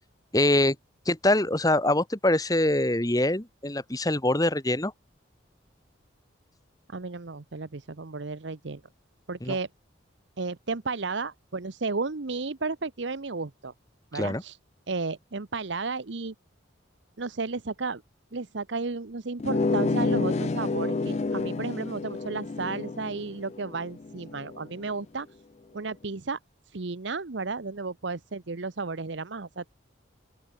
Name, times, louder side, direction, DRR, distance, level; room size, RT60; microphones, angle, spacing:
voice 1, 0.3-0.7 1.0-4.9 9.4-9.6 14.1-14.4, left 1 dB, 20° left, 1.5 m, -24 dB
voice 2, 6.9-8.8 9.3-9.7 10.4-13.7 14.1-14.6 14.9-16.3 17.2-18.0 18.3-25.3 25.7-26.4 26.7-29.7, right 3 dB, 65° right, 0.9 m, -33 dB
sound 1, 19.4-24.7, left 3 dB, 35° left, 0.4 m, -29 dB
open air
head